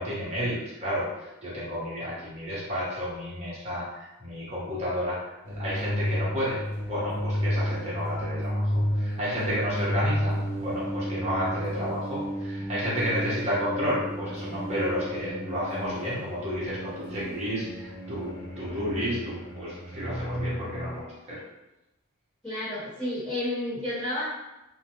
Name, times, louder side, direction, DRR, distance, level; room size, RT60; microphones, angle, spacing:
voice 1, 0.0-6.6 6.9-21.4, equal, 30° right, -7 dB, 0.8 m, -31 dB
sound 1, 5.5-21.0, equal, 75° left, 0.8 m, -32 dB
voice 2, 22.4-24.3, left 1 dB, 5° left, -14 dB, 1.0 m, -31 dB
2.2 x 2.1 x 2.9 m, 0.95 s
head